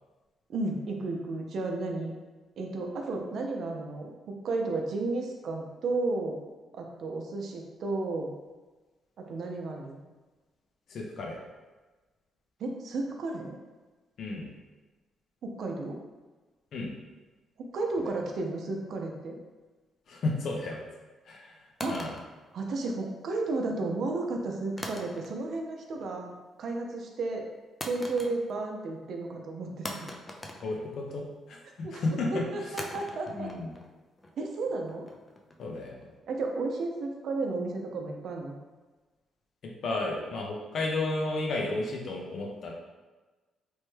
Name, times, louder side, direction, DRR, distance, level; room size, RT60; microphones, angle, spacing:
voice 1, 0.5-2.1 2.6-4.1 4.4-6.4 6.7-8.3 9.2-10.0 12.6-13.6 15.4-16.0 17.6-19.4 21.8-22.0 22.5-26.3 26.6-27.5 27.9-30.1 31.8-32.0 32.3-33.5 34.4-35.0 36.3-38.6, right 3 dB, 65° right, 2 dB, 0.4 m, -33 dB
voice 2, 10.9-11.4 14.2-14.5 16.7-16.9 20.1-20.8 21.3-22.1 30.6-32.7 33.3-33.7 35.6-36.1 39.8-42.7, left 2 dB, 65° left, 0 dB, 0.6 m, -33 dB
sound 1, 21.8-23.2 24.8-25.6 25.9-26.4 27.8-28.7 29.0-29.1 29.8-31.4 32.8-35.8, left 1 dB, 20° left, 0.4 m, -42 dB
3.0 x 2.1 x 3.1 m, 1.2 s
cardioid pair, 90°, 0 cm